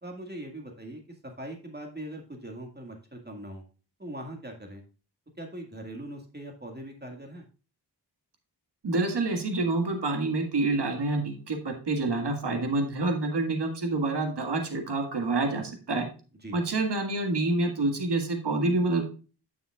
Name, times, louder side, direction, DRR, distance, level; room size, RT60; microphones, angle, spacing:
voice 1, 0.0-3.6 4.0-4.8 5.4-7.4 16.4-16.6, right 1 dB, 25° right, 2 dB, 1.8 m, -41 dB
voice 2, 8.8-16.1 16.5-19.0, right 2 dB, 85° right, 4 dB, 1.8 m, -27 dB
9.7 x 7.3 x 2.3 m, 0.34 s
wide cardioid pair, 75°, 40 cm